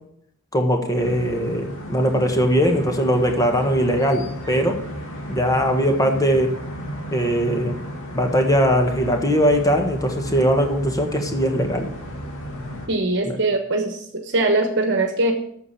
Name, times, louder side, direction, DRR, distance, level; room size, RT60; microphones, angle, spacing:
voice 1, 0.5-4.8 5.3-6.6 7.1-7.8 8.1-11.9 13.2-13.4, equal, 15° left, 4 dB, 1.4 m, -20 dB
sound 1, 1.0-12.9, equal, 60° left, 2.4 m, -34 dB
voice 2, 12.9-15.3, right 2 dB, 55° right, 5 dB, 1.2 m, -21 dB
8.6 x 7.0 x 8.3 m, 0.71 s
head